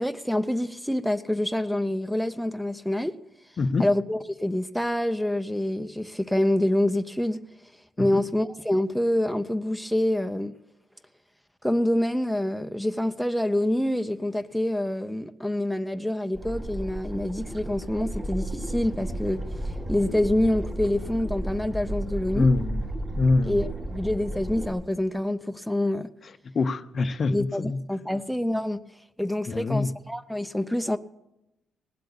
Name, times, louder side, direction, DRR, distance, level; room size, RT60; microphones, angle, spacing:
voice 1, 0.0-3.1 3.8-7.4 8.0-10.5 11.6-22.5 23.5-26.1 27.3-28.8 29.2-31.0, left 1 dB, ahead, 0.4 m, -26 dB
sound 1, 16.3-24.7, right 1 dB, 35° right, 2.6 m, -33 dB
voice 2, 22.3-22.9 23.2-23.6 26.5-27.8 29.5-29.9, left 3 dB, 45° left, 0.6 m, -24 dB
18.0 x 7.9 x 7.0 m
cardioid pair, 130°, 0 cm